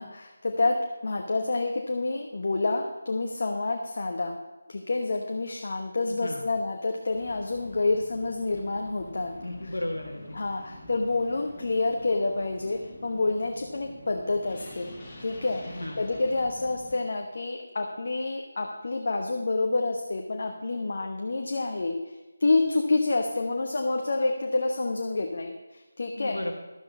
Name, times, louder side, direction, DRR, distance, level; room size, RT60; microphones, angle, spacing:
voice 1, 0.0-4.4 4.7-9.3 9.6-9.7 10.3-14.9 15.2-26.4, left 3 dB, 55° left, 3 dB, 1.1 m, -28 dB
voice 2, 6.1-6.5 9.4-10.4 15.6-16.0 26.2-26.5, left 1 dB, 85° left, -1 dB, 1.6 m, -34 dB
sound 1, 7.1-16.9, left 1 dB, 20° left, 3.1 m, -47 dB
12.0 x 7.8 x 5.5 m, 1.1 s
figure-of-eight pair, 160°, 0 cm